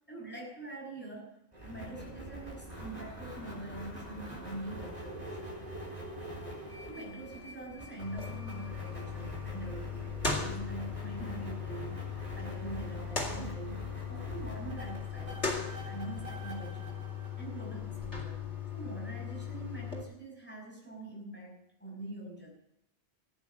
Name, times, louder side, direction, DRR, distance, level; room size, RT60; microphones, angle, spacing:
voice 1, 0.1-1.3 1.6-5.8 6.9-15.6 15.8-17.0 17.4-18.4 18.7-22.5, right 2 dB, 10° left, -2 dB, 5.3 m, -44 dB
sound 1, 1.5-18.0, right 1 dB, 35° right, 4.1 m, -45 dB
sound 2, 8.0-20.0, left 6 dB, 80° left, 2.8 m, -38 dB
14.0 x 9.2 x 6.7 m, 0.84 s
omnidirectional pair, 1.1 m